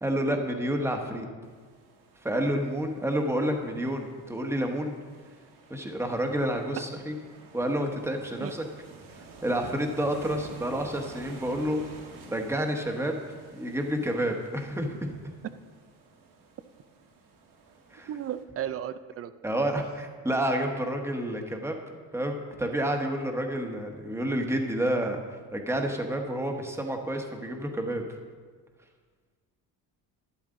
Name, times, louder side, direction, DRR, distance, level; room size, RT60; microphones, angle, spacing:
voice 1, 0.0-1.3 2.2-4.9 5.7-7.1 7.5-8.6 9.1-11.9 12.3-13.2 13.5-15.0 17.9-18.1 19.4-21.8 22.1-28.0, right 1 dB, 5° right, 3 dB, 1.2 m, -29 dB
sound 1, 1.4-18.4, right 3 dB, 55° right, 1.8 m, -51 dB
voice 2, 18.1-19.3, right 10 dB, 35° right, 13 dB, 0.5 m, -34 dB
12.0 x 10.5 x 3.8 m, 1.5 s
cardioid pair, 135°, 40 cm